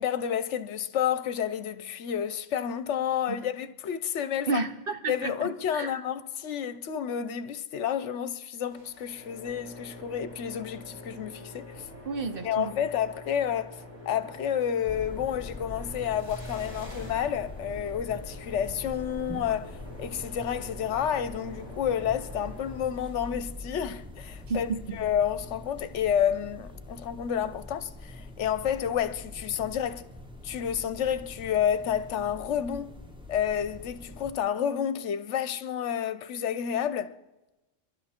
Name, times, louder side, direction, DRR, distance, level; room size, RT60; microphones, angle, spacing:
voice 1, 0.0-4.6 5.1-11.8 12.4-13.8 14.1-30.1 30.4-32.9 33.3-37.2, left 9 dB, 70° left, 1.0 m, -30 dB
voice 2, 4.5-5.9 12.0-12.7 24.5-25.0, right 4 dB, 50° right, 1.1 m, -32 dB
sound 1, 8.7-23.2, left 1 dB, 75° right, 5.9 m, -46 dB
sound 2, 14.9-34.3, left 1 dB, 5° right, 1.0 m, -43 dB
26.0 x 11.5 x 4.3 m
omnidirectional pair, 1.3 m